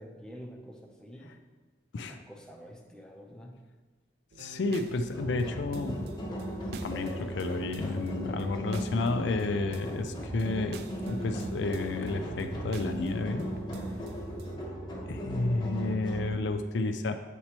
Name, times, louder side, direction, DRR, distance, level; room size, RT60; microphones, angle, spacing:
voice 1, 0.0-1.3 2.0-3.6, equal, 5° left, 0 dB, 0.6 m, -47 dB
sound 1, 4.3-14.6, right 4 dB, 60° right, 0.3 m, -45 dB
voice 2, 4.4-6.1 6.7-13.5 15.1-17.2, left 3 dB, 80° left, 8 dB, 0.4 m, -31 dB
sound 2, 5.1-16.3, equal, 25° left, 1.0 m, -37 dB
8.0 x 4.3 x 2.9 m, 1.3 s
head